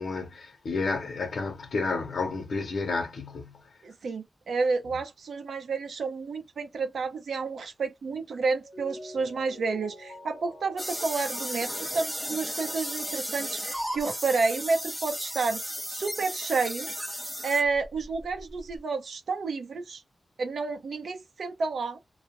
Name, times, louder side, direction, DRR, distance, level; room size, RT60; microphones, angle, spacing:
voice 1, 0.0-3.7, left 4 dB, 70° left, 0.7 m, -31 dB
voice 2, 3.8-16.9 17.4-20.0 20.4-22.0, right 4 dB, 75° right, 0.7 m, -30 dB
Mallet percussion, 8.5-13.4, left 1 dB, 35° left, 0.8 m, -48 dB
sound 1, 10.8-18.8, equal, ahead, 0.3 m, -35 dB
2.3 x 2.1 x 2.8 m
wide cardioid pair, 155°, 0 cm